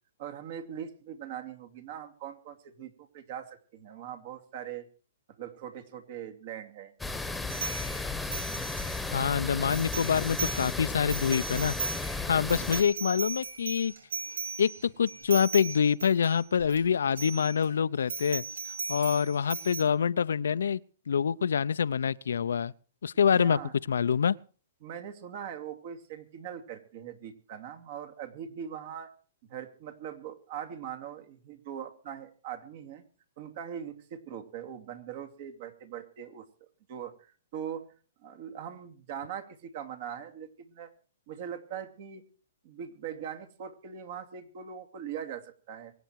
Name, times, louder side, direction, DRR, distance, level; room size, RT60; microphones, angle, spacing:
voice 1, 0.2-4.9 5.3-6.9 12.6-12.7 23.3-23.7 24.8-29.1 29.5-33.0 33.4-37.9 38.2-40.9 41.3-42.2 42.6-45.9, right 9 dB, 50° right, 2.6 m, -41 dB
sound 1, 7.0-12.8, left 3 dB, 5° left, 1.3 m, -34 dB
sound 2, 7.5-9.3 9.6-10.7 11.0-16.8 17.1-17.7 18.1-19.8, right 5 dB, 85° right, 3.9 m, -37 dB
voice 2, 9.1-11.7 12.3-13.9 14.6-18.4 18.9-20.8 21.1-22.7 23.0-23.6 23.9-24.3, left 7 dB, 85° left, 0.6 m, -26 dB
23.5 x 9.1 x 4.7 m
hypercardioid pair, 145°, 0 cm